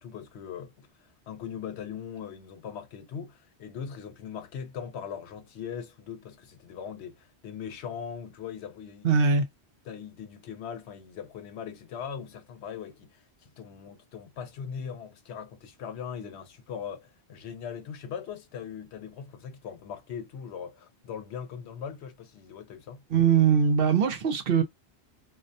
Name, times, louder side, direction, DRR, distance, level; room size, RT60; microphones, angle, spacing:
voice 1, 0.0-9.2 9.9-23.0, left 7 dB, 80° left, 0.9 m, -40 dB
voice 2, 9.0-9.5 23.1-24.6, right 6 dB, 65° right, 0.8 m, -21 dB
2.3 x 2.2 x 2.5 m
omnidirectional pair, 1.1 m